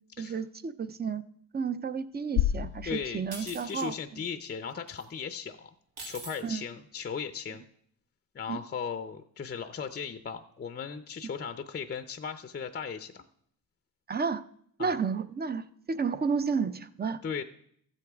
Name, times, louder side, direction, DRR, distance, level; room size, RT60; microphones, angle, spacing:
voice 1, 0.2-1.2 1.5-4.2 6.4-6.7 8.5-8.6 14.1-14.4 14.8-17.2, right 5 dB, 25° right, 13 dB, 0.5 m, -32 dB
sound 1, 2.4-4.4, left 11 dB, 85° left, 0.5 m, -32 dB
voice 2, 2.8-5.7 6.0-7.6 8.3-13.2 14.8-15.0 17.2-17.4, left 6 dB, 25° left, 9 dB, 0.5 m, -37 dB
sound 2, 3.3-3.9 4.9-5.0 6.0-6.4, right 3 dB, 80° right, 2.3 m, -43 dB
13.5 x 8.1 x 3.5 m, 0.66 s
cardioid pair, 100°, 39 cm